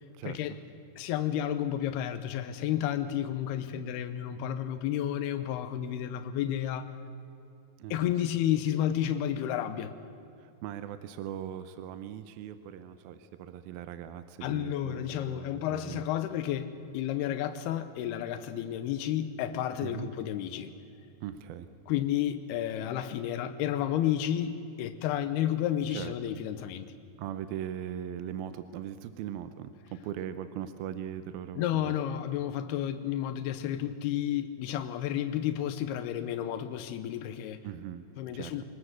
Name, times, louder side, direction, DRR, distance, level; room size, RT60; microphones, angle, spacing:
voice 1, 0.1-0.6 7.8-8.1 10.4-16.1 19.8-20.1 21.2-21.7 25.8-26.1 27.2-31.9 37.6-38.1 38.3-38.6, right 10 dB, 75° right, 11 dB, 2.5 m, -40 dB
voice 2, 1.0-6.9 7.9-9.9 14.4-20.7 21.9-26.9 31.6-37.6 38.2-38.6, left 11 dB, 85° left, 9 dB, 2.9 m, -31 dB
24.5 x 19.5 x 8.0 m, 2.6 s
omnidirectional pair, 4.5 m